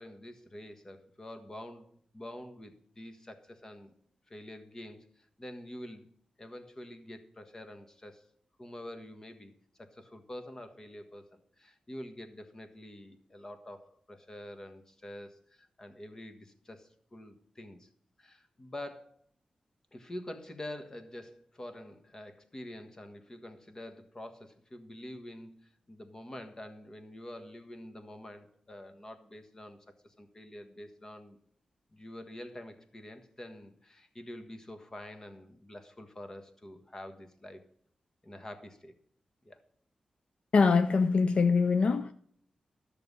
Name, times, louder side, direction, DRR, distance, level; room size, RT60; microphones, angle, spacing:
voice 1, 0.0-3.9 4.3-6.1 6.4-8.2 8.6-9.5 9.8-17.9 18.2-19.2 19.9-29.8 30.0-31.4 31.9-37.6 38.2-38.9 39.4-39.6, left 1 dB, 25° left, 1.4 m, -46 dB
voice 2, 40.5-42.1, left 4 dB, 60° left, 0.5 m, -24 dB
13.0 x 6.7 x 5.4 m
wide cardioid pair, 115°, 2 cm